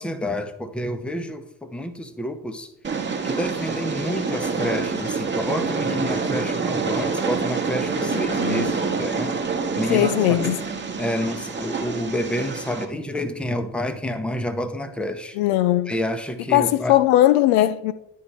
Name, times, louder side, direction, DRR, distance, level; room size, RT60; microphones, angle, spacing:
voice 1, 0.0-2.7 3.2-9.3 9.7-10.6 11.0-15.4 15.9-17.0, equal, ahead, 0.7 m, -29 dB
Train, 2.8-12.8, right 5 dB, 20° right, 1.1 m, -26 dB
voice 2, 8.1-8.7 9.9-10.6 15.4-15.9 16.5-17.9, left 14 dB, 60° left, 0.5 m, -19 dB
11.0 x 3.6 x 4.5 m
figure-of-eight pair, 50°, 48 cm